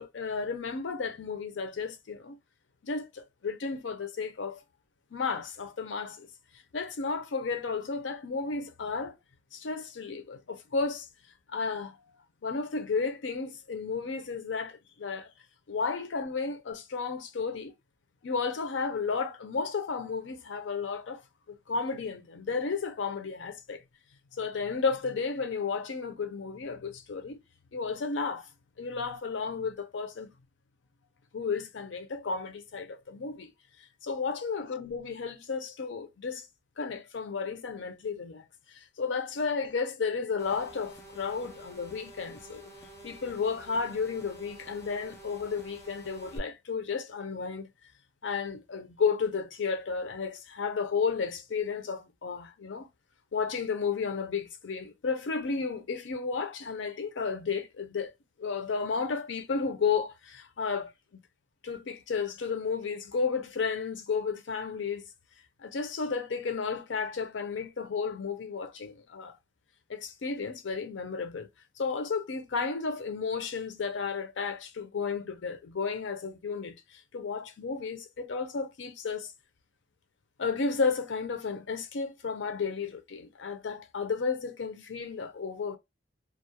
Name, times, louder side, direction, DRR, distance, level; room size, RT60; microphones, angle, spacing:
voice 1, 0.0-2.4 2.8-4.6 5.1-6.3 6.7-9.2 9.5-11.1 11.5-12.0 12.4-15.3 15.7-17.7 18.2-21.2 21.5-23.8 24.3-27.4 27.7-28.5 28.8-30.3 31.3-33.5 34.0-36.5 36.8-38.4 38.7-42.6 43.0-47.7 48.2-52.9 53.3-58.1 58.4-60.9 61.6-65.0 65.6-69.4 69.9-71.5 71.8-79.3 80.4-85.8, left 5 dB, 80° left, 0.5 m, -33 dB
sound 1, 40.4-46.4, right 1 dB, 15° left, 0.4 m, -49 dB
2.3 x 2.0 x 2.7 m
head